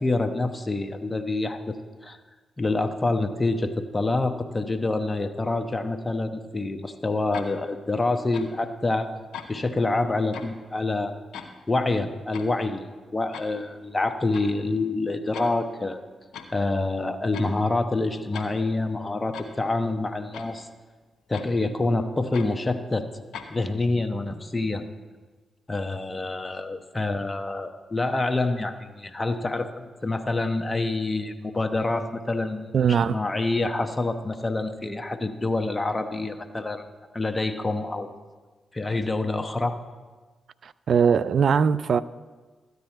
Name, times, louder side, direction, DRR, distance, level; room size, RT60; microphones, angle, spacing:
voice 1, 0.0-1.8 2.0-2.2 2.6-9.1 9.5-11.1 11.7-16.0 16.5-20.7 21.3-23.1 23.5-24.8 25.7-38.1 38.7-39.8, left 2 dB, 30° left, 1.0 m, -27 dB
sound 1, 7.3-7.5 8.3-8.5 9.3-9.5 10.3-10.5 11.3-11.5 12.3-12.5 13.3-13.5 14.3-14.5 15.3-15.5 16.3-16.5 17.3-17.5 18.3-18.5 19.3-19.5 20.3-20.5 21.3-21.5 22.3-22.5 23.3-23.5, left 7 dB, 75° left, 0.9 m, -39 dB
voice 2, 32.7-33.2 40.6-42.0, right 7 dB, 65° right, 0.3 m, -21 dB
13.0 x 9.5 x 4.4 m
hypercardioid pair, 40°, 0 cm